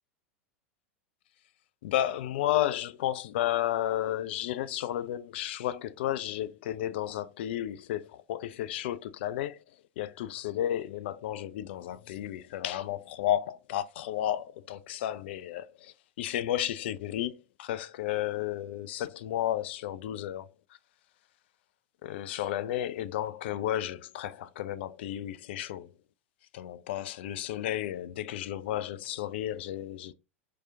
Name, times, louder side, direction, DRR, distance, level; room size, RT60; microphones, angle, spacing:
voice 1, 1.8-9.6 10.0-20.5 22.0-25.9 26.5-30.1, left 12 dB, 55° left, 0.3 m, -32 dB
4.6 x 2.8 x 2.5 m
figure-of-eight pair, 85°, 7 cm